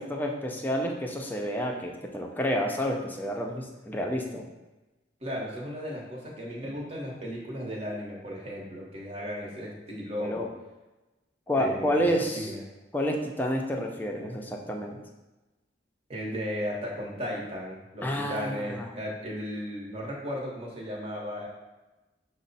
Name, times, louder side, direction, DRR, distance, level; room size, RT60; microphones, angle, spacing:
voice 1, 0.0-4.5 10.2-10.5 11.5-12.5 12.9-15.0 18.0-18.9, equal, 10° left, 1 dB, 0.5 m, -29 dB
voice 2, 5.2-10.5 11.5-12.1 12.3-12.6 16.1-21.5, equal, 35° right, -3 dB, 1.0 m, -35 dB
6.2 x 2.1 x 4.0 m, 1.1 s
head